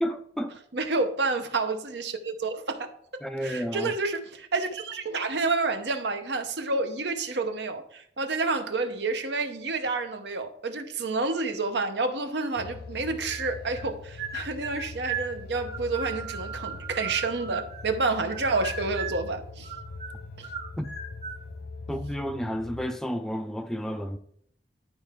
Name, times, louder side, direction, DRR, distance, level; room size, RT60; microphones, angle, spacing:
voice 1, 0.0-0.5 3.2-3.9 20.8-20.9 21.9-24.2, equal, ahead, 0.4 m, -31 dB
voice 2, 0.7-2.9 3.4-19.7 20.4-20.5, right 3 dB, 70° right, 0.8 m, -29 dB
sound 1, 12.6-22.9, left 3 dB, 50° left, 0.6 m, -42 dB
sound 2, 13.3-13.9 14.2-18.0 18.3-19.3 19.6-21.4, right 6 dB, 40° right, 1.4 m, -37 dB
11.0 x 4.6 x 3.6 m
head